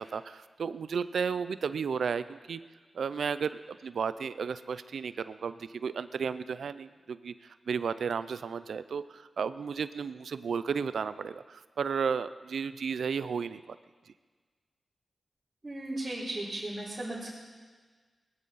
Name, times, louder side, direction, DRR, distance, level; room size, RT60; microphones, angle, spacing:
voice 1, 0.0-2.6 2.9-7.3 7.7-13.8, right 6 dB, 85° right, 14 dB, 0.5 m, -33 dB
voice 2, 15.6-17.3, right 1 dB, 35° right, -8 dB, 3.5 m, -36 dB
19.5 x 13.5 x 4.1 m, 1.5 s
wide cardioid pair, 85°, 0 cm